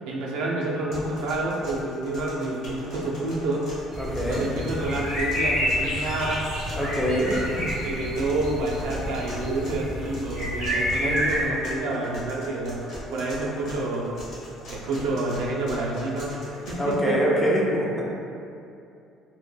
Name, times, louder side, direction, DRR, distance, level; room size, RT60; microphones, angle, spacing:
voice 1, 0.1-3.7 4.3-6.4 7.1-7.4 7.8-12.8 13.1-14.2 14.7-17.2, right 2 dB, 75° right, -3 dB, 0.3 m, -28 dB
sound 1, 0.9-16.9, equal, 50° left, 0.8 m, -40 dB
sound 2, 3.9-11.5, equal, 80° left, 0.9 m, -29 dB
voice 2, 4.0-4.4 6.7-7.7 16.8-18.0, equal, 5° left, -5 dB, 0.3 m, -24 dB
2.1 x 2.1 x 3.1 m, 2.5 s
cardioid pair, 170°, 0 cm